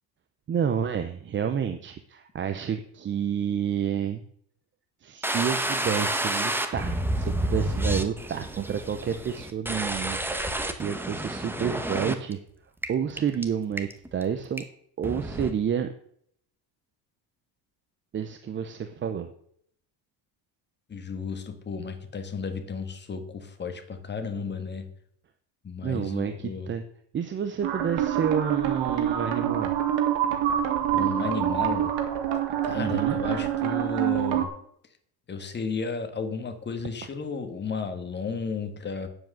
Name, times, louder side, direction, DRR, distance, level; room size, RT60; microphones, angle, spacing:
voice 1, 0.5-4.2 5.0-12.4 12.9-14.6 15.0-15.9 18.1-19.3 25.8-26.8 27.1-29.7 32.7-33.2, right 8 dB, 25° right, 9 dB, 0.6 m, -29 dB
sound 1, 5.2-12.3 12.8-12.9 13.2-13.4 13.8-14.2 14.6-14.7 15.0-15.5, right 1 dB, 5° right, 0.9 m, -29 dB
voice 2, 20.9-24.9 25.6-26.7 30.9-31.9 32.6-34.5 35.3-39.1, left 5 dB, 25° left, 8 dB, 1.6 m, -33 dB
sound 2, 27.6-34.5, right 10 dB, 70° right, 2.2 m, -26 dB
9.3 x 7.8 x 7.6 m, 0.66 s
cardioid pair, 145°, 46 cm